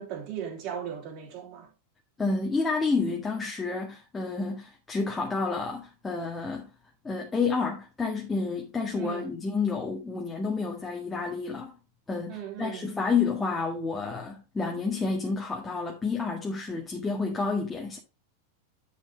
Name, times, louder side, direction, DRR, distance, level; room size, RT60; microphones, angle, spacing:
voice 1, 0.0-1.7 8.9-9.3 12.3-12.9, right 8 dB, 40° right, 3.0 m, -37 dB
voice 2, 2.2-6.7 7.0-11.8 12.1-18.0, left 4 dB, 10° left, 1.7 m, -30 dB
10.5 x 6.6 x 2.9 m
figure-of-eight pair, 90°, 0 cm